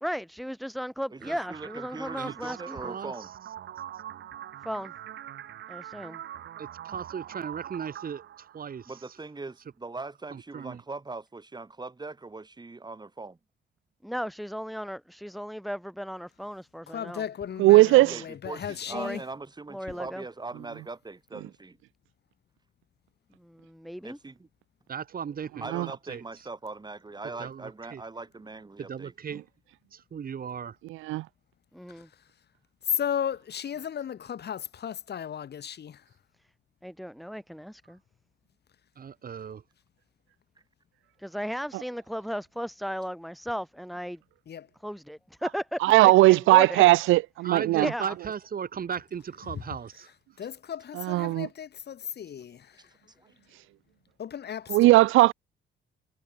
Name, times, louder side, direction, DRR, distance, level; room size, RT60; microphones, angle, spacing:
voice 1, 0.0-3.0 4.6-4.9 5.7-6.2 14.0-17.2 18.9-19.2 19.7-20.2 23.4-24.2 31.7-32.1 36.8-38.0 41.2-44.2 44.8-46.9 47.8-48.1, equal, ahead, 0.6 m, -35 dB
voice 2, 1.1-3.3 8.9-13.4 18.0-21.8 24.0-24.5 25.6-29.1 52.8-52.9 53.2-53.3, right 3 dB, 20° right, 2.9 m, -41 dB
speed hi, 1.2-9.2, right 11 dB, 65° right, 1.9 m, -43 dB
voice 3, 2.2-2.6 2.8-3.1 6.6-8.2 8.5-8.9 10.3-10.8 24.9-26.2 27.4-28.0 28.8-29.4 29.9-30.8 39.0-39.6 47.4-50.1, right 7 dB, 45° right, 2.1 m, -36 dB
voice 4, 16.9-19.2 19.9-20.0 31.9-32.0 32.9-36.0 44.5-44.7 49.5-49.6 50.4-52.9 54.2-55.1, left 8 dB, 55° left, 3.0 m, -35 dB
voice 5, 17.6-18.2 25.7-25.9 30.9-31.2 45.8-47.9 51.0-51.5 54.7-55.3, right 18 dB, 85° right, 0.5 m, -18 dB
cardioid pair, 90°, 20 cm